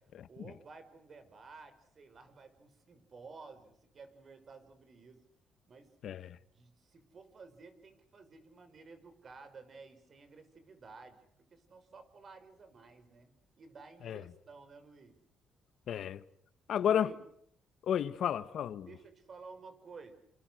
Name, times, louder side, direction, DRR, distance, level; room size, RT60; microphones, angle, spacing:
voice 1, 0.3-5.2 5.7-5.9 6.4-15.2 16.8-17.2 18.1-18.2 18.8-20.1, right 4 dB, 45° right, 5.9 m, -54 dB
voice 2, 6.0-6.4 14.0-14.2 15.9-16.2 16.7-17.1 17.8-18.9, left 9 dB, 70° left, 1.4 m, -32 dB
29.0 x 27.0 x 6.6 m
cardioid pair, 90°, 0 cm